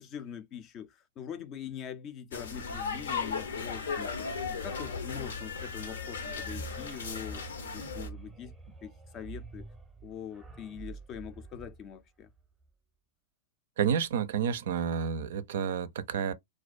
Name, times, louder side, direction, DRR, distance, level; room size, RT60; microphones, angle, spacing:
voice 1, 0.0-4.3 4.6-7.4 7.7-8.5 8.8-9.7 10.0-12.3, left 9 dB, 35° left, 0.4 m, -43 dB
sound 1, 2.3-8.1, left 5 dB, 85° left, 0.7 m, -36 dB
sound 2, 6.4-12.6, right 3 dB, 10° right, 0.7 m, -46 dB
voice 2, 13.8-16.3, right 7 dB, 70° right, 0.4 m, -30 dB
2.3 x 2.2 x 2.4 m
hypercardioid pair, 125°, 0 cm